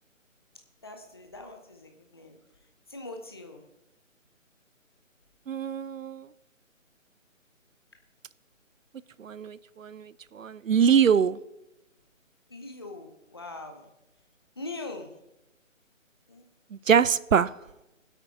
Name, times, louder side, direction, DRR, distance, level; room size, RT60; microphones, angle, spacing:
voice 1, 0.8-2.4 2.9-3.6 12.5-13.9 14.6-15.1 16.3-16.5, left 2 dB, 20° left, 4 dB, 0.7 m, -42 dB
voice 2, 5.5-6.3 9.2-11.4 16.7-17.5, right 7 dB, 75° right, 19 dB, 0.5 m, -24 dB
19.0 x 8.2 x 3.7 m, 0.92 s
figure-of-eight pair, 150°, 40 cm